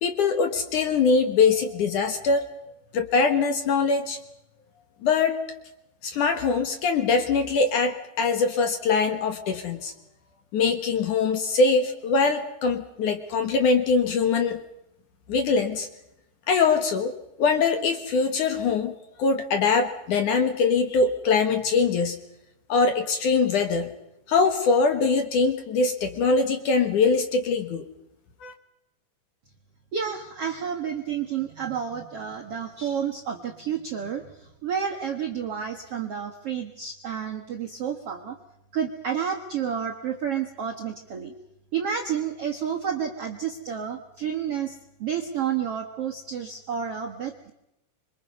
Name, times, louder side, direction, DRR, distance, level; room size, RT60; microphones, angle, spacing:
voice 1, 0.0-2.5 2.9-4.2 5.0-5.4 6.0-9.9 10.5-14.6 15.3-15.9 16.5-18.9 19.2-22.2 22.7-23.9 24.3-27.9 28.4-28.5, left 4 dB, 60° left, 7 dB, 2.4 m, -23 dB
voice 2, 29.9-38.4 38.7-41.3 41.7-47.5, right 8 dB, 60° right, 2 dB, 1.5 m, -30 dB
27.0 x 24.5 x 5.4 m, 0.86 s
omnidirectional pair, 5.0 m